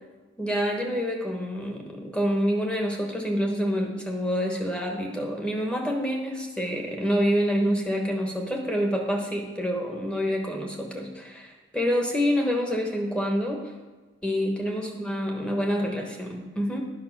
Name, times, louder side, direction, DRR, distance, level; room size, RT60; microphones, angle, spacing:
voice 1, 0.4-13.7 14.2-16.8, equal, 5° left, 1 dB, 1.3 m, -27 dB
10.5 x 5.6 x 6.0 m, 1.3 s
head